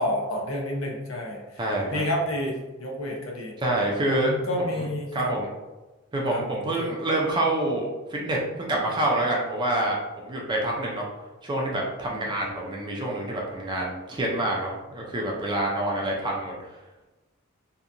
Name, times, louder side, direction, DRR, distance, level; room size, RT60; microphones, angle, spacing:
voice 1, 0.0-1.4 1.9-3.6 4.1-5.3 6.3-6.4 6.8-6.9 12.1-12.5, left 1 dB, 70° left, -1 dB, 0.6 m, -30 dB
voice 2, 1.6-2.0 3.6-4.3 4.7-4.9 5.1-5.5 6.1-10.0 10.2-11.0 11.4-16.5, right 1 dB, 20° right, -2 dB, 0.4 m, -27 dB
2.7 x 2.2 x 2.5 m, 1.1 s
head